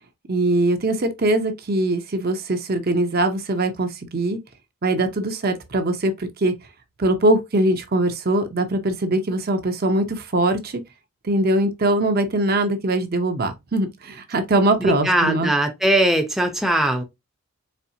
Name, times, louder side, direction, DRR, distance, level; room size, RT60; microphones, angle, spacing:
voice 1, 0.3-4.4 4.8-6.5 7.0-10.8 11.2-15.5, right 2 dB, 45° right, 0.6 m, -22 dB
voice 2, 14.8-17.0, right 1 dB, ahead, 0.6 m, -20 dB
4.3 x 3.1 x 2.7 m
head